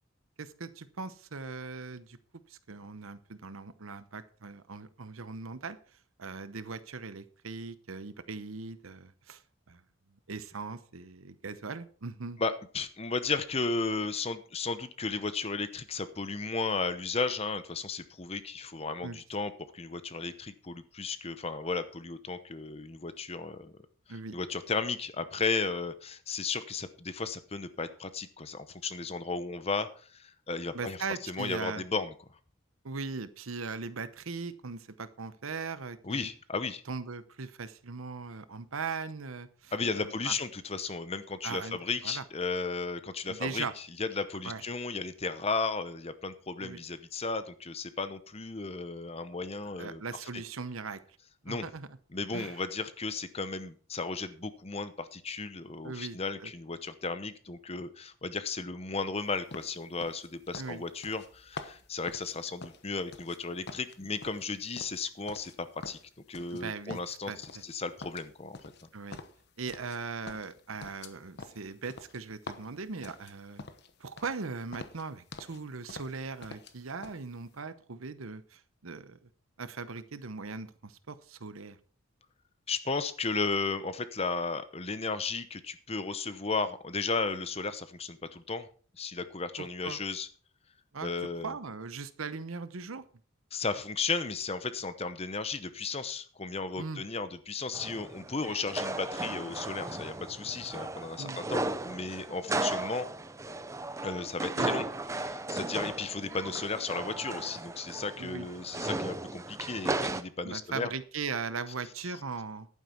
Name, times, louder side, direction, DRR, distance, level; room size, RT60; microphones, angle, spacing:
voice 1, 0.4-2.2 2.5-5.8 6.2-9.4 9.7-9.8 10.3-12.4 19.0-19.2 24.1-24.4 30.7-31.8 32.8-36.3 36.9-40.4 41.4-41.8 42.0-42.2 43.2-43.7 44.4-44.6 46.6-46.8 49.6-51.0 51.5-51.9 52.3-52.6 55.8-56.2 56.4-56.5 60.6-60.8 66.5-67.4 68.9-69.2 69.6-73.6 74.0-79.3 79.6-81.8 89.6-90.0 90.9-93.0 96.8-97.0 101.2-101.4 104.5-104.7 108.2-108.5 110.4-112.7, right 4 dB, 80° right, 13 dB, 0.9 m, -39 dB
voice 2, 12.4-23.7 24.3-31.0 31.2-32.1 36.0-36.8 39.7-50.0 51.4-51.6 52.1-66.0 66.3-68.6 82.7-88.7 89.0-90.3 91.0-91.6 93.5-103.1 104.0-104.9 105.2-110.9, left 4 dB, 30° left, 12 dB, 0.8 m, -34 dB
sound 1, 59.5-63.4 63.7-65.6 65.8-66.6 66.9-67.7 68.0-70.0 70.3-73.9 74.2-74.4 74.7-75.6 75.9-76.7 77.0-77.2, left 3 dB, 50° left, 1.0 m, -46 dB
sound 2, 97.7-110.2, right 2 dB, 15° right, 0.5 m, -36 dB
11.0 x 9.2 x 4.5 m, 0.42 s
head